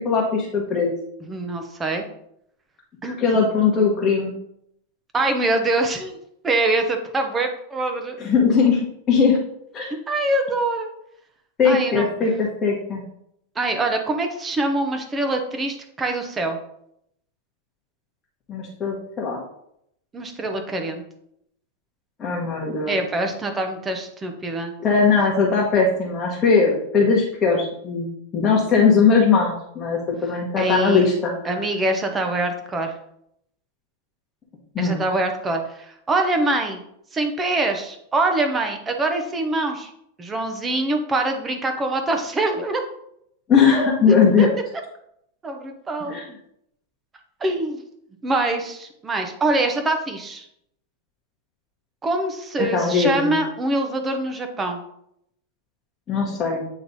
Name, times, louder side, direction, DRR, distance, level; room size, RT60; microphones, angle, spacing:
voice 1, 0.0-0.9 3.0-4.3 8.2-9.4 9.7-9.9 11.6-13.0 18.5-19.4 22.2-23.0 24.8-28.1 28.3-31.3 34.7-35.0 43.5-44.5 46.1-46.3 52.6-53.3 56.1-56.7, left 5 dB, 20° left, -4 dB, 1.2 m, -19 dB
voice 2, 1.3-2.0 3.0-3.2 5.1-6.2 6.4-8.2 10.1-10.9 11.6-12.1 13.6-16.6 20.1-21.0 22.9-24.7 30.6-31.1 31.4-32.9 34.8-36.8 37.1-39.9 40.2-42.8 44.1-44.5 45.4-46.2 47.4-47.8 48.2-50.5 52.0-54.8, right 2 dB, 15° right, 4 dB, 0.7 m, -24 dB
8.6 x 3.2 x 4.1 m, 0.74 s
supercardioid pair, 160°, 0 cm